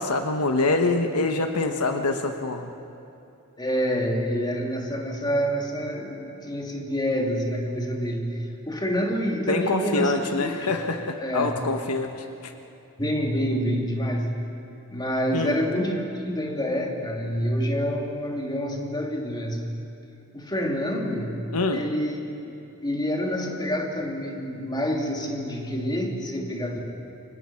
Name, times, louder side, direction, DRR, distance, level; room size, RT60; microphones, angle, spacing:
voice 1, 0.0-2.7 9.5-12.5 15.3-15.6 21.5-21.9, left 3 dB, 80° left, 5 dB, 1.4 m, -25 dB
voice 2, 3.6-10.1 10.4-10.7 11.2-11.6 13.0-14.5 14.9-19.7 20.3-22.2 22.4-22.5 22.8-26.8, equal, 20° left, 0 dB, 2.8 m, -27 dB
29.0 x 25.0 x 6.0 m, 2.7 s
head